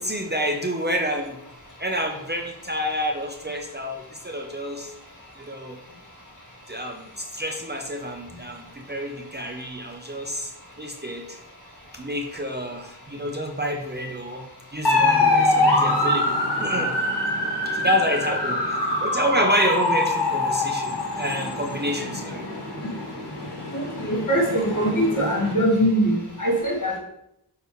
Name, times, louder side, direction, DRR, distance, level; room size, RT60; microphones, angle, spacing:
voice 1, 0.0-1.4 1.8-4.9 5.4-5.8 6.7-10.5 10.8-11.4 11.9-14.4 14.7-16.9 17.7-18.6 19.0-22.4, equal, 25° right, 2 dB, 0.7 m, -28 dB
sound 1, 14.8-25.5, left 2 dB, 90° left, 1.4 m, -24 dB
voice 2, 24.0-27.0, equal, 45° left, -4 dB, 2.0 m, -22 dB
6.9 x 4.8 x 3.1 m, 0.81 s
wide cardioid pair, 65°, 41 cm